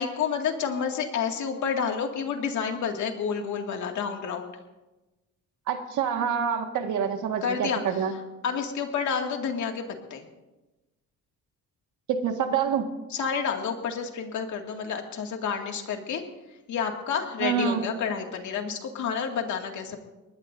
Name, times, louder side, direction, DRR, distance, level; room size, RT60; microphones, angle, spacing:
voice 1, 0.0-4.5 7.4-7.8 8.4-9.8 10.1-10.2 13.1-16.2 16.7-20.0, left 6 dB, 75° left, 3 dB, 2.3 m, -29 dB
voice 2, 5.7-8.1 12.1-12.9 17.4-17.8, right 7 dB, 80° right, 5 dB, 1.9 m, -26 dB
22.5 x 20.0 x 2.7 m, 1.1 s
cardioid pair, 90°, 30 cm